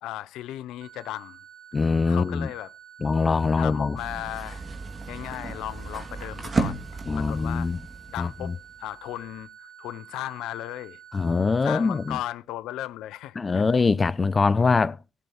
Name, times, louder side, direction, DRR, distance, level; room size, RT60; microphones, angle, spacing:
voice 1, 0.0-1.4 2.1-2.7 3.6-4.6 5.1-6.8 7.2-7.7 8.1-8.5 8.8-11.0 11.6-13.6 14.6-14.7, left 14 dB, 85° left, 0.6 m, -36 dB
sound 1, 0.8-12.2, right 10 dB, 75° right, 2.4 m, -49 dB
voice 2, 1.7-2.5 3.0-4.0 7.1-7.8 8.2-8.5 11.1-12.2 13.4-15.0, left 4 dB, 35° left, 0.5 m, -23 dB
sound 2, 4.0-9.1, right 3 dB, 40° right, 2.9 m, -33 dB
16.0 x 6.8 x 4.6 m
supercardioid pair, 55°, 0 cm